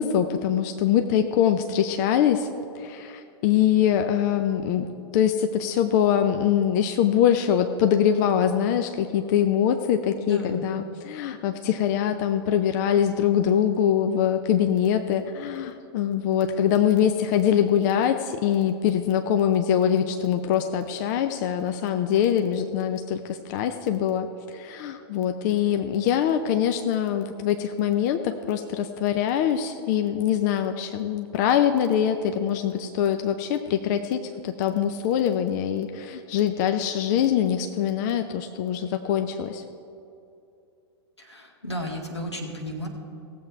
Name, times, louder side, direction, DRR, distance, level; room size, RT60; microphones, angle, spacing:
voice 1, 0.0-2.5 2.7-39.6, left 9 dB, 40° left, 7 dB, 0.6 m, -23 dB
voice 2, 10.2-10.7 41.2-42.9, equal, 85° left, 1 dB, 1.9 m, -34 dB
18.0 x 7.7 x 4.5 m, 2.6 s
figure-of-eight pair, 100°, 14 cm